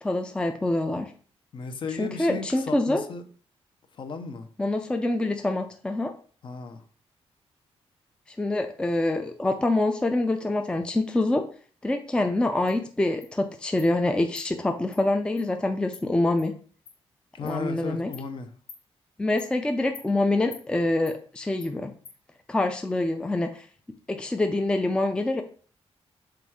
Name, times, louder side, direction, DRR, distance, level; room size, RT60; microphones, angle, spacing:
voice 1, 0.0-1.1 2.0-3.0 4.6-6.1 8.4-11.4 11.8-16.5 17.4-18.1 19.2-21.9 22.5-23.6 24.1-25.4, left 2 dB, 10° left, 5 dB, 0.4 m, -25 dB
voice 2, 1.5-3.2 4.0-4.5 6.4-6.8 17.3-18.5, left 4 dB, 50° left, 7 dB, 0.8 m, -35 dB
Insect, 12.7-12.8 13.2-13.3 13.8-13.9 14.4-14.5 14.9-15.0 15.4-15.5 15.9-16.0 16.4-16.5 16.9-17.0 17.5-17.6 18.1-18.3 18.7-18.8 19.4-19.5 19.9-20.1 20.5-20.6 21.1-21.2 21.6-21.7 22.0-22.2, left 6 dB, 85° left, 1.8 m, -46 dB
6.0 x 3.6 x 4.6 m, 0.43 s
wide cardioid pair, 155°, 11 cm